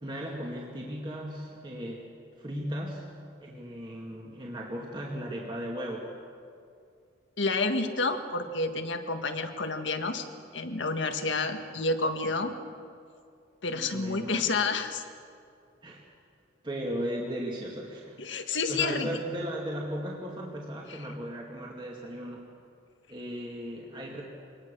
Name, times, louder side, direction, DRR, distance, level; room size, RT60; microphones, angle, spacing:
voice 1, 0.0-2.1 2.4-3.1 3.4-6.1 13.7-14.5 15.8-16.1 16.6-18.2 18.7-22.4 23.1-24.2, equal, 25° right, -2 dB, 2.2 m, -36 dB
voice 2, 7.4-10.3 10.5-12.5 13.6-15.0 18.2-19.1 20.9-21.0, left 3 dB, 85° left, 7 dB, 1.7 m, -29 dB
25.0 x 19.0 x 6.9 m, 2.4 s
head